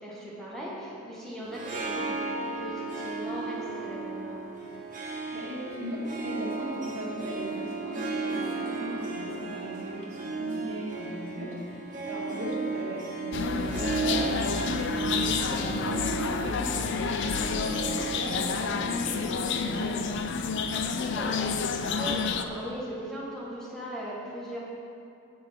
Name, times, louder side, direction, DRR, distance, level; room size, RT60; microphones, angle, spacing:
voice 1, 0.0-4.4 15.4-16.1 20.7-21.4 21.8-24.6, equal, ahead, -7 dB, 1.2 m, -39 dB
Harp, 1.4-20.8, right 3 dB, 40° right, 1.4 m, -35 dB
voice 2, 5.3-16.8 17.3-20.2, equal, 65° right, -5 dB, 1.8 m, -38 dB
sound 1, 13.3-22.4, left 5 dB, 55° left, 0.4 m, -29 dB
9.5 x 7.2 x 3.4 m, 2.5 s
head